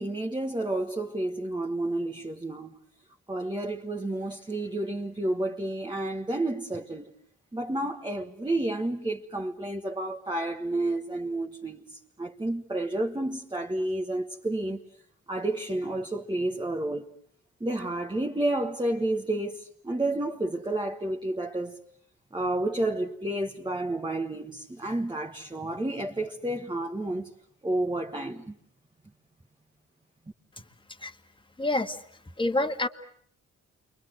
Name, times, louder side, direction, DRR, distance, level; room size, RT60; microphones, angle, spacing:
voice 1, 0.0-2.8 3.3-7.1 7.5-14.8 15.3-17.1 17.6-21.8 22.3-27.3 27.6-28.5, right 1 dB, 15° right, 1.6 m, -30 dB
voice 2, 31.6-32.0 32.4-32.9, left 2 dB, 15° left, 1.8 m, -27 dB
29.0 x 23.5 x 8.0 m
cardioid pair, 70°, 29 cm